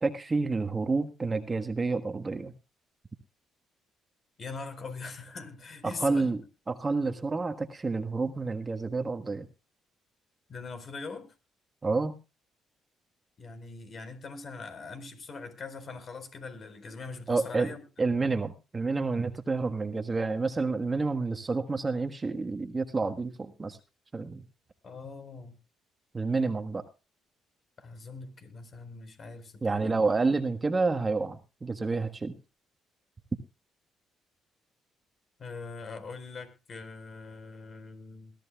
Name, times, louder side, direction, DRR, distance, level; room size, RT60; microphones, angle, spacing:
voice 1, 0.0-2.5 5.8-6.4 6.7-9.5 11.8-12.2 17.3-17.7 18.0-23.8 24.1-24.4 26.1-26.8 29.6-32.3, right 3 dB, 25° right, 7 dB, 1.5 m, -29 dB
voice 2, 4.4-6.3 10.5-11.3 13.4-17.8 24.8-25.6 27.8-30.1 35.4-38.3, left 4 dB, 45° left, 9 dB, 4.4 m, -42 dB
21.5 x 14.0 x 2.4 m, 0.30 s
cardioid pair, 85°, 0 cm